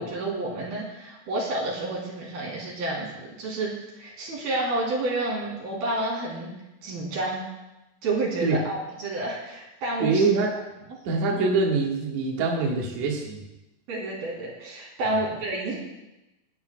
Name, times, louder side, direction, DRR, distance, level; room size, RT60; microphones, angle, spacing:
voice 1, 0.0-6.5 6.8-7.4 8.0-10.3 13.9-15.8, right 2 dB, 80° right, -3 dB, 5.4 m, -30 dB
voice 2, 10.0-10.5 11.0-13.4 15.1-15.2, right 4 dB, 55° right, -2 dB, 2.7 m, -24 dB
28.5 x 12.0 x 2.3 m, 0.98 s
omnidirectional pair, 4.2 m